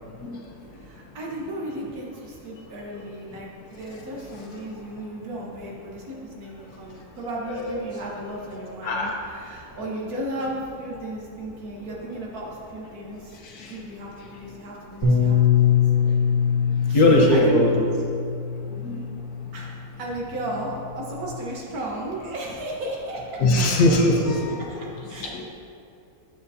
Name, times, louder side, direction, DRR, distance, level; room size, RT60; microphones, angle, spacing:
voice 1, 0.1-0.8 2.9-3.0 3.3-3.4 3.7-4.0 4.3-4.4 4.8-5.0 6.9-7.1 7.5-7.7 8.8-9.3 13.3-13.8 14.2-14.5 15.8-16.2 16.7-17.7 18.8-19.0 19.4-19.6 23.4-25.5, left 1 dB, 90° left, -1 dB, 1.6 m, -23 dB
voice 2, 0.8-13.3 13.7-15.7 16.9-17.7 19.5-23.4 24.7-25.3, right 1 dB, 80° right, -3 dB, 1.7 m, -34 dB
Bass guitar, 15.0-19.5 20.3-21.3, left 7 dB, 15° left, 2.0 m, -23 dB
9.0 x 7.8 x 2.7 m, 2.6 s
omnidirectional pair, 1.6 m